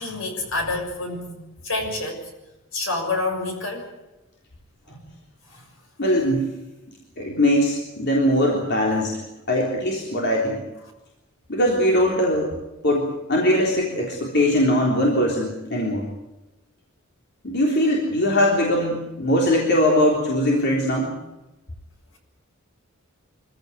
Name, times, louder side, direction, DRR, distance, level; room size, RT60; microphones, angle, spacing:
voice 1, 0.0-2.3 2.7-3.9 4.9-5.1 5.5-5.7, left 2 dB, 70° left, 3 dB, 6.6 m, -28 dB
voice 2, 6.0-6.6 7.2-9.2 9.5-10.6 11.5-12.5 12.8-16.1 17.4-21.2, left 1 dB, 55° left, -1 dB, 3.7 m, -21 dB
25.0 x 15.5 x 9.4 m, 1.0 s
head